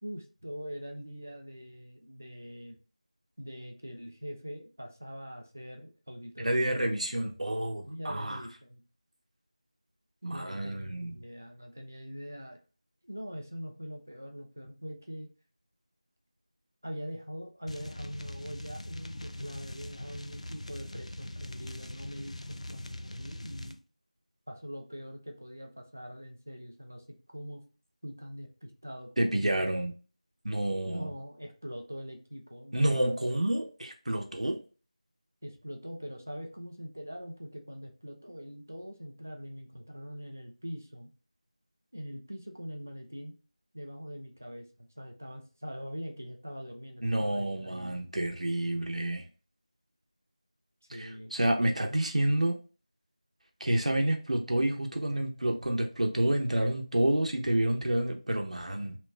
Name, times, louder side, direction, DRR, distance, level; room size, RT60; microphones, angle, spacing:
voice 1, 0.0-2.8 3.4-6.8 7.8-8.8 10.3-12.6 13.1-15.3 16.8-23.8 24.5-27.0 27.3-27.6 28.0-29.7 30.9-33.1 35.4-41.1 41.9-43.3 43.7-48.0 50.9-51.3, equal, 20° right, 3 dB, 0.3 m, -43 dB
voice 2, 6.4-8.4 10.2-11.2 29.2-29.9 30.4-31.1 32.7-34.6 47.0-49.2 50.9-52.6 53.6-59.0, right 1 dB, 80° right, 2 dB, 0.7 m, -29 dB
sound 1, 17.7-23.8, left 1 dB, 70° left, 0.3 m, -42 dB
3.0 x 2.1 x 3.2 m, 0.35 s
figure-of-eight pair, 180°, 4 cm